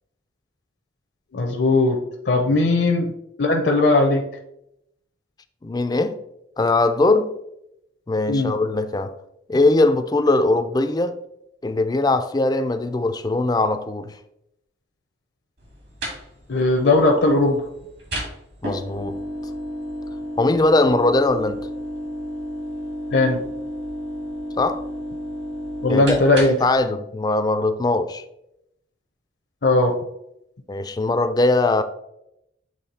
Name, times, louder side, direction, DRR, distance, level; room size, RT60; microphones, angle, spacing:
voice 1, 1.3-2.0 2.3-3.1 3.4-4.2 8.3-8.5 16.5-17.6 23.1-23.4 25.8-26.6 29.6-29.9, left 2 dB, 60° left, 0.6 m, -18 dB
voice 2, 5.6-6.2 6.6-7.3 8.1-9.1 9.5-11.2 11.6-14.1 18.6-19.2 20.4-21.7 24.6-24.8 25.9-28.2 30.7-31.8, left 2 dB, 20° left, 0.4 m, -20 dB
sound 1, 15.6-26.8, equal, 60° right, 1.8 m, -32 dB
7.6 x 3.1 x 4.1 m
head